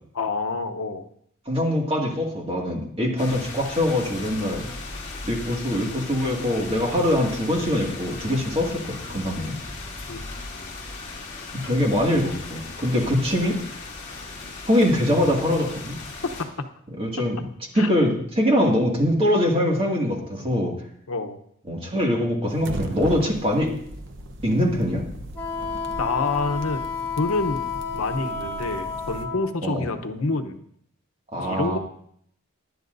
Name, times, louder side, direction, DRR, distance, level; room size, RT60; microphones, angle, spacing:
voice 1, 0.1-1.1 10.1-10.3 10.5-10.7 16.4-16.7 17.7-17.9 21.1-21.4 26.0-26.9 27.2-30.6 31.4-31.8, left 3 dB, 90° left, 8 dB, 1.0 m, -28 dB
voice 2, 1.5-4.7 5.2-9.6 11.6-13.6 14.7-16.0 17.0-17.5 17.7-20.7 21.7-23.7 24.4-25.0 29.6-29.9 31.3-31.8, left 1 dB, 25° right, 0 dB, 2.1 m, -23 dB
sound 1, 3.2-16.4, left 3 dB, 35° left, 2.9 m, -37 dB
sound 2, 22.5-29.2, right 1 dB, 60° right, 1.0 m, -37 dB
Wind instrument woodwind instrument, 25.3-29.5, left 5 dB, 5° left, 2.6 m, -31 dB
18.5 x 11.0 x 2.7 m, 0.67 s
head